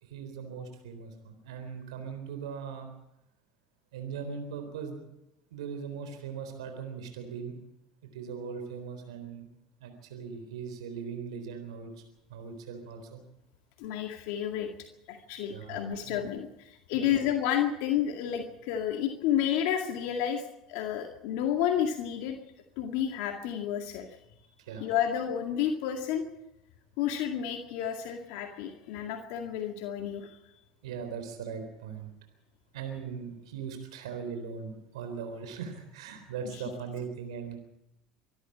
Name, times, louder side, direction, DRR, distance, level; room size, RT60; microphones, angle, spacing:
voice 1, 0.0-2.9 3.9-5.1 5.5-7.5 8.1-9.5 9.8-12.0 12.3-13.2 15.5-16.2 16.9-17.2 24.6-24.9 30.8-32.1 32.7-37.6, right 6 dB, 85° right, 7 dB, 3.8 m, -39 dB
voice 2, 13.8-14.7 15.1-22.4 22.8-24.1 24.8-26.2 27.0-30.3 36.5-36.6, left 9 dB, 70° left, 3 dB, 2.1 m, -31 dB
25.0 x 12.5 x 8.6 m, 0.87 s
hypercardioid pair, 75°, 3 cm